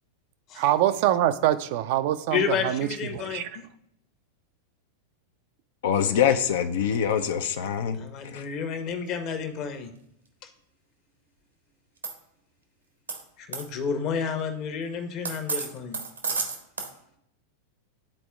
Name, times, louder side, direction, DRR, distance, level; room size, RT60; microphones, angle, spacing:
voice 1, 0.6-2.9 3.1-3.4, right 13 dB, 50° right, 0.4 m, -24 dB
voice 2, 2.3-3.6 7.9-9.9 10.4-10.5 13.4-16.0, left 6 dB, 40° left, 0.9 m, -30 dB
voice 3, 5.8-8.0 8.2-8.4, left 8 dB, 55° left, 0.5 m, -24 dB
sound 1, 12.0-12.1 13.1-13.2 13.5-13.6 15.2-16.9, right 5 dB, 75° right, 1.0 m, -30 dB
12.0 x 4.2 x 2.3 m
figure-of-eight pair, 90°, 0 cm